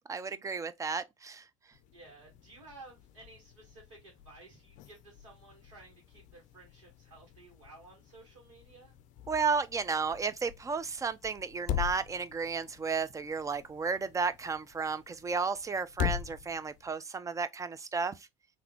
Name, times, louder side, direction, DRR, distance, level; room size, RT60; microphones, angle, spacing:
voice 1, 0.1-1.4 9.3-18.1, right 5 dB, 20° right, 0.5 m, -33 dB
sound 1, 1.7-17.0, left 10 dB, 55° left, 0.5 m, -43 dB
voice 2, 1.9-9.0, right 2 dB, 80° right, 1.5 m, -55 dB
3.5 x 2.7 x 3.5 m
hypercardioid pair, 65°, 16 cm